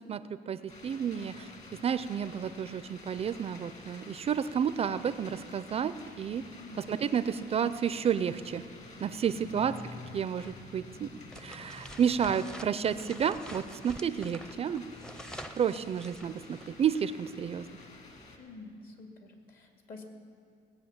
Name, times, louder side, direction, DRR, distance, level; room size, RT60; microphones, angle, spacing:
voice 1, 0.5-1.5 1.8-6.4 6.8-8.6 9.0-9.8 10.1-11.1 11.4-14.9 15.6-17.7, right 8 dB, 35° right, 13 dB, 0.4 m, -31 dB
sound 1, 0.7-18.4, left 3 dB, 40° left, 2.1 m, -50 dB
sound 2, 11.3-16.8, equal, 5° left, 0.6 m, -47 dB
voice 2, 18.4-20.0, left 3 dB, 60° left, 3 dB, 2.3 m, -48 dB
18.5 x 8.1 x 7.1 m, 2.5 s
cardioid pair, 110°, 17 cm